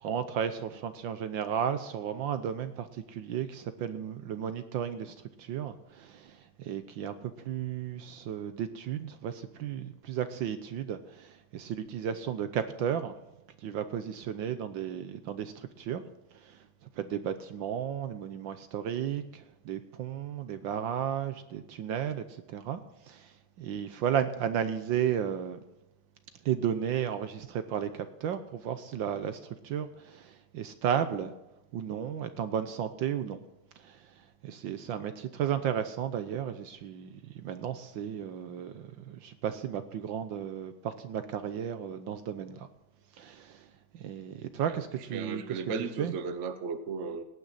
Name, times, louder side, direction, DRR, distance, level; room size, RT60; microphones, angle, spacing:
voice 1, 0.0-13.2 13.6-16.0 16.5-16.6 17.0-22.8 23.1-23.3 23.6-25.6 26.4-31.3 31.7-33.4 33.8-34.0 34.4-42.7 43.2-43.6 43.9-45.6 46.0-46.1, right 9 dB, 70° right, 11 dB, 1.4 m, -34 dB
voice 2, 45.1-47.2, right 5 dB, 45° right, 10 dB, 1.0 m, -35 dB
17.5 x 9.4 x 4.0 m, 0.98 s
omnidirectional pair, 2.4 m